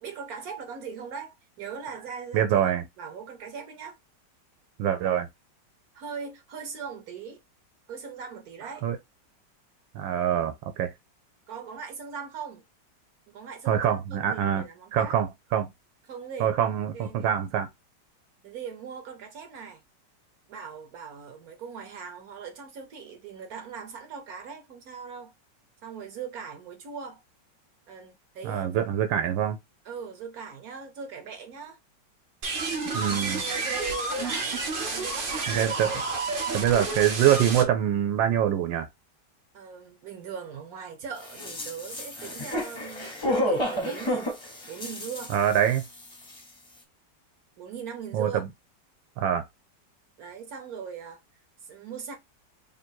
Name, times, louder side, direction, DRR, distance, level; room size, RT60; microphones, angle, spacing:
voice 1, 0.0-2.7 3.0-4.0 5.9-7.4 7.9-8.9 11.5-12.6 13.3-15.2 16.1-16.5 16.9-17.3 18.4-19.8 20.5-25.3 25.8-27.2 27.9-28.8 29.8-31.8 32.9-35.6 39.5-44.3 44.7-45.3 47.6-48.5 50.2-51.2 51.6-52.2, right 6 dB, 60° right, 1.1 m, -40 dB
voice 2, 2.3-2.8 4.8-5.3 8.8-9.0 9.9-10.9 13.7-14.6 14.9-15.7 16.4-17.7 28.4-29.6 32.9-33.4 35.5-35.9 36.5-38.9 45.3-45.8 48.1-48.3 49.2-49.4, right 10 dB, 90° right, 1.3 m, -24 dB
sound 1, 32.4-37.6, right 3 dB, 45° right, 0.7 m, -30 dB
sound 2, 41.2-46.0 46.3-46.4, left 1 dB, 25° left, 0.6 m, -31 dB
3.2 x 2.6 x 4.4 m
omnidirectional pair, 2.0 m